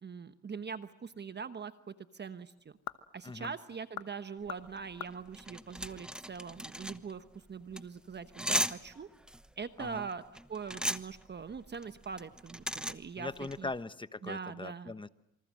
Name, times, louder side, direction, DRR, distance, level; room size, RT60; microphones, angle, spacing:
voice 1, 0.0-2.8 3.1-9.1 9.6-10.2 10.5-13.3 13.6-13.7 14.2-14.9, right 5 dB, 35° right, 11 dB, 1.1 m, -42 dB
sound 1, 0.7-6.6, left 12 dB, 80° left, 1.2 m, -49 dB
voice 2, 3.2-3.5 8.5-8.7 9.8-10.1 13.2-15.1, left 3 dB, 15° left, 14 dB, 1.0 m, -40 dB
sound 2, 4.5-13.8, equal, 5° right, 1.1 m, -38 dB
27.0 x 25.0 x 7.6 m, 0.82 s
cardioid pair, 90°, 30 cm